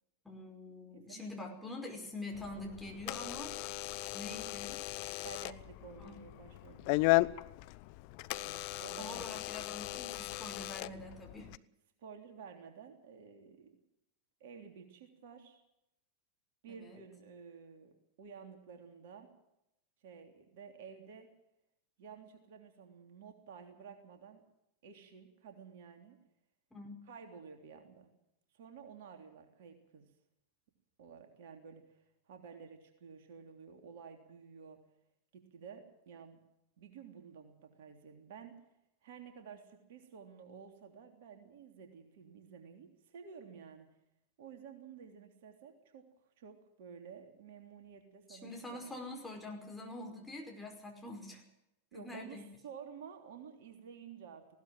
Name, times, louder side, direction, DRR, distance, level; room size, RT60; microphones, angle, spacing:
voice 1, 0.2-3.6 4.1-4.8 6.0-6.2 8.4-11.5 16.7-17.0 26.7-27.0 48.3-51.4 51.9-52.4, left 2 dB, 5° left, 0 dB, 5.3 m, -45 dB
voice 2, 1.1-1.6 5.2-7.1 8.8-9.7 12.0-13.7 14.4-15.6 16.6-19.3 20.0-21.3 22.0-24.4 24.8-26.2 27.1-28.1 28.5-30.1 31.0-32.0 32.3-34.8 35.3-36.4 36.8-38.6 39.0-43.9 44.4-46.1 46.4-49.0 51.9-54.5, right 6 dB, 55° right, 5 dB, 3.3 m, -52 dB
Door / Alarm, 2.3-11.6, left 22 dB, 45° left, 0.7 m, -36 dB
20.0 x 17.0 x 7.7 m, 0.83 s
figure-of-eight pair, 90°, 0 cm